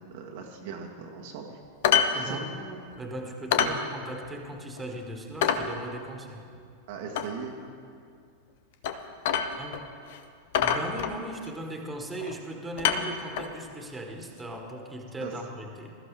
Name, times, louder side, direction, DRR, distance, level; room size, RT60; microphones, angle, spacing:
voice 1, 0.1-1.6 2.1-2.4 3.5-3.7 6.9-7.6 15.2-15.3, right 6 dB, 50° right, 1 dB, 1.4 m, -39 dB
sound 1, 1.8-2.2 2.4-2.5 2.9-3.0 3.5-3.8 4.2-4.3 4.8-4.9 5.4-5.7 7.2-7.3 8.8-9.0 9.3-9.8 10.1-10.2 10.5-11.5 12.2-12.4 12.8-13.6 14.5-14.6, left 8 dB, 50° left, 0.9 m, -26 dB
voice 2, 1.9-6.4 9.6-9.8 10.6-16.0, right 1 dB, 10° right, 2 dB, 1.9 m, -38 dB
21.0 x 14.0 x 3.4 m, 2.3 s
figure-of-eight pair, 90°, 0 cm